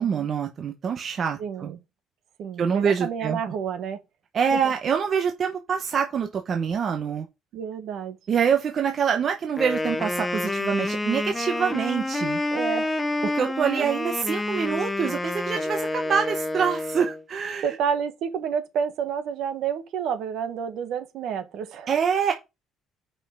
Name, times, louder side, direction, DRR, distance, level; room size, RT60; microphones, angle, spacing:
voice 1, 0.0-1.7 2.6-3.4 4.3-7.3 8.3-12.4 13.2-17.8 21.9-22.3, right 7 dB, 35° right, 0.9 m, -25 dB
voice 2, 1.4-1.8 2.4-4.0 4.5-4.7 7.5-8.2 12.5-13.0 13.8-13.9 17.6-21.9, right 7 dB, 55° right, 1.4 m, -29 dB
Wind instrument woodwind instrument, 9.5-17.2, left 2 dB, 10° left, 0.9 m, -28 dB
5.5 x 5.5 x 6.5 m
cardioid pair, 170°, 0 cm